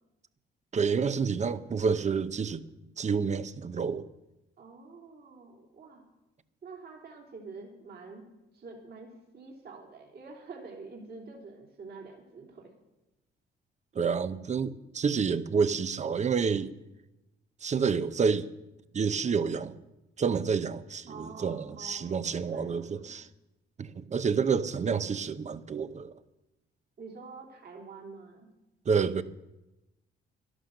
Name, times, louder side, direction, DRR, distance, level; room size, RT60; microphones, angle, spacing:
voice 1, 0.7-2.6 3.0-4.1 13.9-16.7 17.6-18.5 18.9-19.7 20.2-23.3 23.8-26.1 28.9-29.2, right 6 dB, 35° right, 14 dB, 0.7 m, -29 dB
voice 2, 4.6-6.0 6.6-8.2 8.5-12.7 21.1-23.2 27.0-28.5, right 4 dB, 55° right, 0 dB, 3.2 m, -47 dB
12.0 x 11.5 x 6.6 m, 0.98 s
cardioid pair, 90°, 20 cm